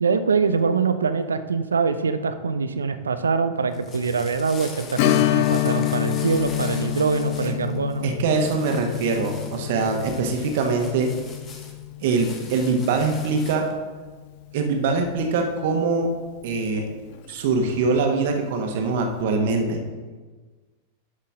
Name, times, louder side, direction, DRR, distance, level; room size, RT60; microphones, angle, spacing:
voice 1, 0.0-8.1, right 5 dB, 70° right, 11 dB, 0.5 m, -24 dB
sound 1, 3.5-13.8, left 4 dB, 25° left, 1.2 m, -43 dB
Strum, 5.0-14.2 14.5-14.6 17.1-17.3 17.8-17.9, left 15 dB, 45° left, 0.5 m, -27 dB
voice 2, 8.0-11.1 12.0-13.7 14.5-16.1 16.4-16.8 17.3-19.8, right 4 dB, 55° right, 3 dB, 1.3 m, -23 dB
11.5 x 5.6 x 3.7 m, 1.4 s
figure-of-eight pair, 90°, 0 cm